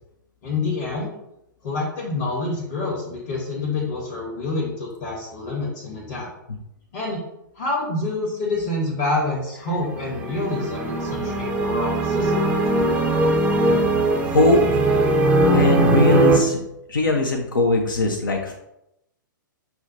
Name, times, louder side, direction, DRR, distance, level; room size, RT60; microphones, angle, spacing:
voice 1, 0.4-1.1 1.6-6.3 6.9-7.2 7.5-12.6, left 2 dB, 40° left, -5 dB, 1.0 m, -27 dB
sound 1, 9.8-16.4, right 2 dB, 10° right, 0.4 m, -20 dB
voice 2, 14.2-14.8 15.5-16.6 16.9-18.5, left 3 dB, 75° left, 2 dB, 0.5 m, -20 dB
5.6 x 2.1 x 2.6 m, 0.83 s
figure-of-eight pair, 115°, 11 cm